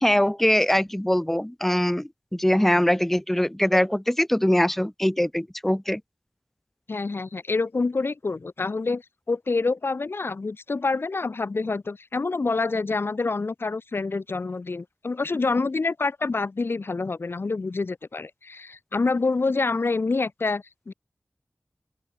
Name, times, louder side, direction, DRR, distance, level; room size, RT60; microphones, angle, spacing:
voice 1, 0.0-6.0, left 1 dB, 5° left, 0.3 m, -22 dB
voice 2, 6.9-9.0 9.3-20.9, left 3 dB, 60° left, 1.0 m, -27 dB
open air
wide cardioid pair, 75°, 4 cm